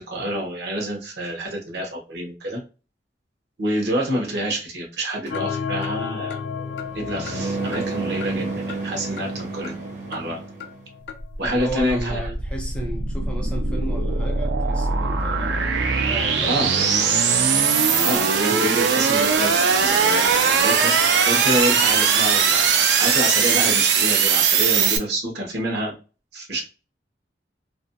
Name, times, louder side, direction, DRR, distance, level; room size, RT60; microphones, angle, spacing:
voice 1, 0.0-2.6 3.6-6.4 6.9-9.7 10.1-10.4 11.4-12.3 16.5-16.7 18.0-22.7 23.0-25.9 26.3-26.6, right 1 dB, 70° right, 0.9 m, -27 dB
sound 1, 5.3-11.3, left 6 dB, 75° left, 0.4 m, -33 dB
sound 2, 5.3-10.8, right 3 dB, 40° right, 0.7 m, -32 dB
sound 3, 11.3-25.0, right 6 dB, 85° right, 0.5 m, -20 dB
voice 2, 11.4-17.1 18.5-18.8, right 1 dB, 5° left, 0.4 m, -33 dB
2.5 x 2.2 x 2.6 m
head